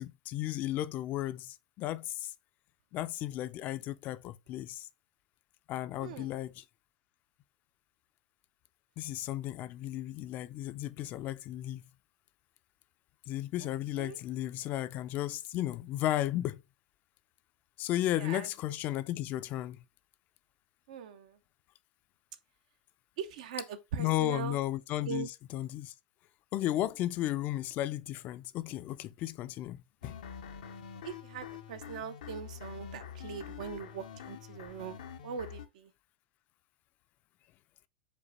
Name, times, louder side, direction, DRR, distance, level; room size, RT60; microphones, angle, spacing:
voice 1, 0.0-2.3 2.9-4.9 5.7-6.6 9.0-11.8 13.3-16.6 17.8-19.8 24.0-25.9 26.5-30.2, left 14 dB, 45° left, 0.4 m, -34 dB
voice 2, 6.0-6.4 13.6-13.7 14.0-14.2 18.1-18.7 20.9-21.4 23.2-24.6 25.0-25.3 31.0-35.9, right 7 dB, 75° right, 0.6 m, -41 dB
sound 1, 30.0-35.7, left 8 dB, 85° left, 0.6 m, -46 dB
5.2 x 2.2 x 4.1 m
hypercardioid pair, 110°, 4 cm